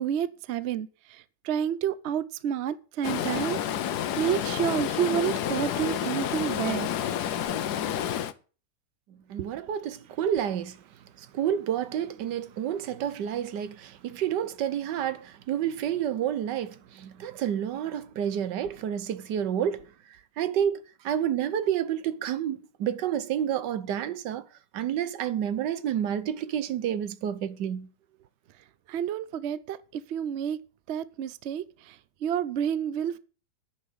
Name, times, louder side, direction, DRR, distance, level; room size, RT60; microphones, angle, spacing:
voice 1, 0.0-3.6 4.2-6.9 28.9-30.6 30.9-33.2, right 9 dB, 60° right, 0.7 m, -30 dB
Stream, 3.0-8.3, left 10 dB, 70° left, 1.2 m, -29 dB
voice 2, 9.3-10.8 11.2-19.9 20.4-24.4 24.7-27.9, right 9 dB, 80° right, 1.4 m, -29 dB
10.5 x 5.8 x 7.7 m
omnidirectional pair, 1.9 m